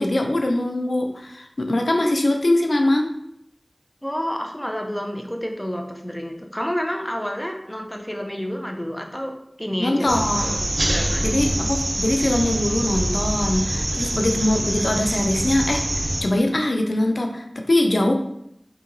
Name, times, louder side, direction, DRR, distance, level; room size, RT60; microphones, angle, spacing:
voice 1, 0.0-3.1 9.8-10.6 11.2-18.1, left 1 dB, 85° left, 3 dB, 0.4 m, -22 dB
voice 2, 4.0-10.2 10.8-11.5, equal, 10° left, 3 dB, 0.6 m, -29 dB
sound 1, 10.1-16.2, right 1 dB, 85° right, 0.6 m, -25 dB
5.6 x 2.9 x 2.6 m, 0.76 s
wide cardioid pair, 50°, 0 cm